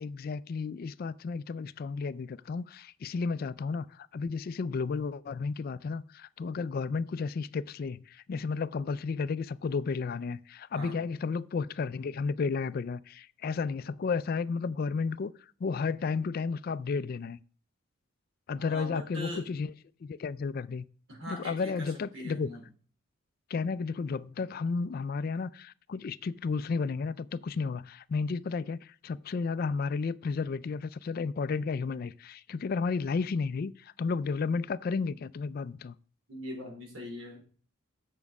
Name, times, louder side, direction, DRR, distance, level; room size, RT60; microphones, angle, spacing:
voice 1, 0.0-15.3 15.6-17.4 18.5-19.7 20.0-20.8 21.3-22.5 23.5-35.9, left 4 dB, 45° left, 0.3 m, -32 dB
voice 2, 18.6-19.4 21.1-22.6 36.3-37.4, equal, 70° right, 4.5 m, -41 dB
7.2 x 7.1 x 5.3 m
head